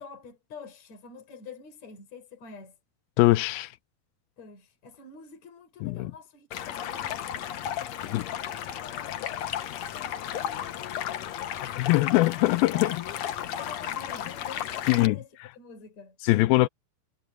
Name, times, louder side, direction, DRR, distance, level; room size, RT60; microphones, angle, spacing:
voice 1, 0.0-2.8 4.4-7.5 7.9-12.3 12.7-15.3 15.5-16.2, left 5 dB, 50° left, 6.0 m, -47 dB
voice 2, 3.2-3.7 5.8-6.1 8.1-8.3 11.8-13.0 14.9-15.2 16.2-16.7, left 20 dB, 90° left, 2.5 m, -22 dB
Stream, 6.5-15.1, left 10 dB, 65° left, 1.9 m, -34 dB
omnidirectional pair, 4.3 m